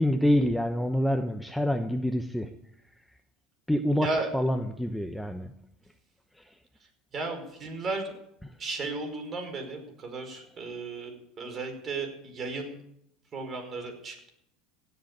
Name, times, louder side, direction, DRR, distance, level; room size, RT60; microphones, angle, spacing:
voice 1, 0.0-2.5 3.7-4.1 4.3-5.5 6.4-6.5, equal, 5° left, 6 dB, 0.9 m, -26 dB
voice 2, 7.1-8.1 8.6-12.8 13.3-14.3, right 3 dB, 35° right, 5 dB, 5.0 m, -34 dB
16.5 x 8.0 x 8.7 m, 0.76 s
supercardioid pair, 115°, 0 cm